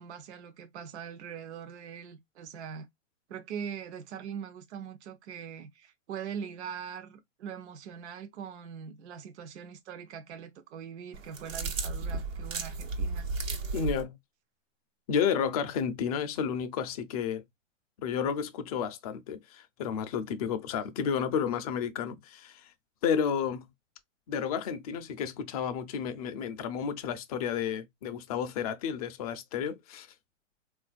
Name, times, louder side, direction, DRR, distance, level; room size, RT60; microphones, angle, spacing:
voice 1, 0.0-2.9 3.3-13.3, right 7 dB, 60° right, 0.7 m, -42 dB
sound 1, 11.1-14.0, right 3 dB, 85° right, 1.1 m, -34 dB
voice 2, 13.7-14.2 15.1-17.4 18.0-22.7 23.0-23.7 24.3-30.1, left 7 dB, 30° left, 0.4 m, -31 dB
3.6 x 2.4 x 2.4 m
hypercardioid pair, 130°, 38 cm